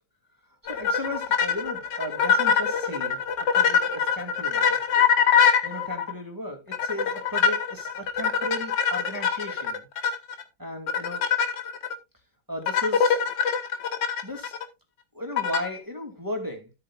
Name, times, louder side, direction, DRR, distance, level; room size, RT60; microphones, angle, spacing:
voice 1, 0.6-4.8 5.6-9.9 10.6-11.3 12.5-13.3 14.2-14.6 15.1-16.7, left 1 dB, 10° right, 2.4 m, -35 dB
sound 1, 0.7-6.1 6.7-10.4 10.9-11.9 12.7-14.6 15.4-15.8, left 7 dB, 70° left, 1.9 m, -23 dB
13.5 x 8.5 x 2.4 m
omnidirectional pair, 2.1 m